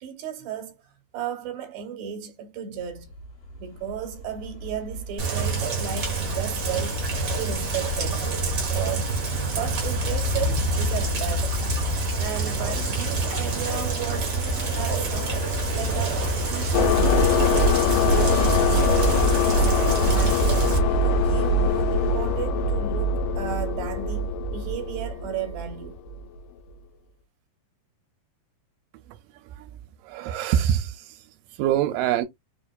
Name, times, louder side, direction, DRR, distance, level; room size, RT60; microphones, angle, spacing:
voice 1, 0.0-3.1 3.6-7.0 7.4-8.3 8.7-9.2 9.6-11.6 12.2-14.4 14.8-15.4 15.7-17.5 18.1-20.5 21.0-26.0, right 9 dB, 70° right, 2.0 m, -34 dB
sound 1, 2.7-22.6, left 1 dB, 55° left, 2.3 m, -38 dB
Rain, 5.2-20.8, right 2 dB, 55° right, 1.2 m, -27 dB
sound 2, 16.7-26.2, left 2 dB, 85° left, 2.1 m, -22 dB
voice 2, 29.4-31.2 31.6-32.3, right 10 dB, 85° right, 2.2 m, -25 dB
5.0 x 2.5 x 2.2 m
omnidirectional pair, 3.8 m